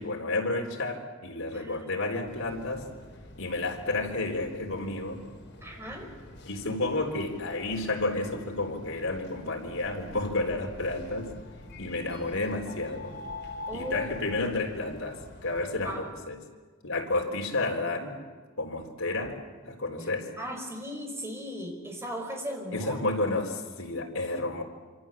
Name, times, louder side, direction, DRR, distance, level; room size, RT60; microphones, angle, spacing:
voice 1, 0.0-2.9 3.4-5.2 6.5-11.3 11.8-13.1 13.7-16.4 16.8-18.2 18.6-20.3 22.7-24.6, left 2 dB, 85° left, 1 dB, 3.9 m, -31 dB
voice 2, 1.5-1.9 5.6-6.1 13.7-14.0 15.8-16.0 20.0-20.1 20.4-23.0, equal, 15° right, 2 dB, 5.6 m, -37 dB
sound 1, 2.2-16.0, left 2 dB, 60° left, 5.8 m, -46 dB
27.0 x 26.0 x 7.4 m, 1.4 s
head